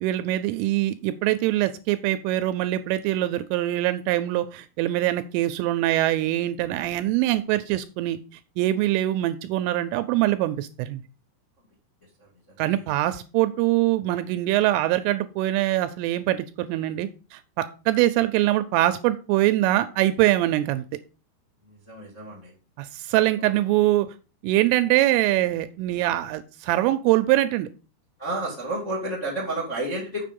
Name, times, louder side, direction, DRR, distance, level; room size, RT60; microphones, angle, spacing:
voice 1, 0.0-8.2 8.6-11.0 12.6-20.8 22.8-24.1 24.4-27.7, right 15 dB, 85° right, 11 dB, 3.0 m, -23 dB
voice 2, 12.2-12.8 21.7-22.5 28.2-30.2, right 2 dB, 45° left, -2 dB, 0.9 m, -31 dB
7.6 x 6.7 x 5.3 m, 0.34 s
omnidirectional pair, 6.0 m